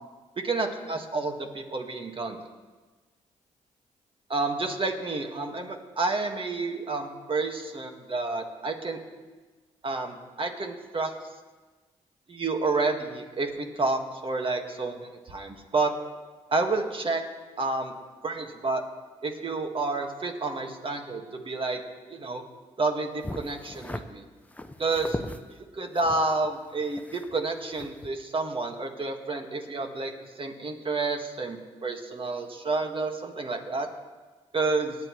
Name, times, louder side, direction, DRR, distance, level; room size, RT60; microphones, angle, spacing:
voice 1, 0.4-2.4 4.3-9.0 9.8-11.1 12.3-15.0 15.3-15.9 16.5-17.2 17.6-17.9 18.2-18.8 19.2-21.8 22.1-22.4 22.8-24.2 24.8-25.2 25.7-30.1 30.4-33.9 34.5-35.0, right 3 dB, 40° right, 4 dB, 1.8 m, -29 dB
sound 1, 23.2-24.0 24.5-25.4 26.0-27.5 27.7-28.1, left 1 dB, 10° left, 0.8 m, -38 dB
19.0 x 9.6 x 3.2 m, 1.3 s
supercardioid pair, 55°, 13 cm